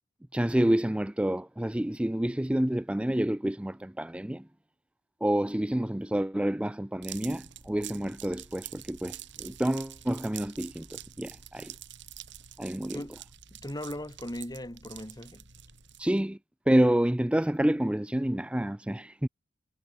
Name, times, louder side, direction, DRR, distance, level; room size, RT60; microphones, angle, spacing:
voice 1, 0.3-4.5 5.2-11.7 12.6-13.0 16.0-16.4 16.7-19.3, right 1 dB, 5° right, 0.4 m, -28 dB
sound 1, 7.0-16.2, right 11 dB, 60° right, 7.5 m, -46 dB
voice 2, 13.5-15.4, left 1 dB, 20° left, 3.3 m, -38 dB
head